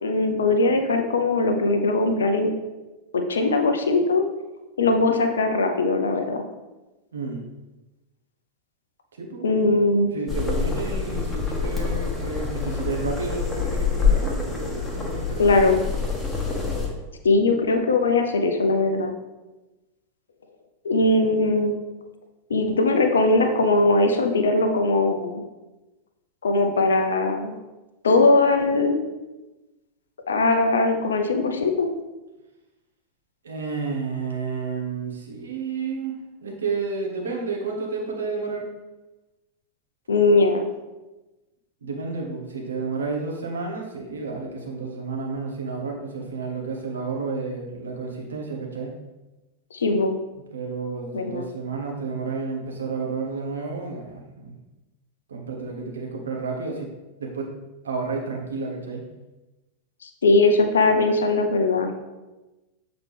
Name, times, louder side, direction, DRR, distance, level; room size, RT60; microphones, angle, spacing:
voice 1, 0.0-2.5 3.1-4.2 4.8-6.4 9.4-10.1 15.4-15.8 17.2-19.1 20.8-21.7 22.5-25.4 26.4-27.5 28.0-29.0 30.3-31.9 40.1-40.7 49.7-50.1 51.1-51.5 60.0-61.9, left 2 dB, 70° left, 5 dB, 0.6 m, -20 dB
voice 2, 7.1-7.4 9.1-9.4 10.1-15.4 33.4-38.7 41.8-49.0 50.5-54.6 55.3-56.9 57.2-57.5 57.8-59.1, right 4 dB, 70° right, -1 dB, 1.2 m, -31 dB
sound 1, 10.3-16.9, left 5 dB, 10° left, 1.2 m, -26 dB
7.3 x 3.9 x 3.4 m, 1.1 s
figure-of-eight pair, 90°, 0 cm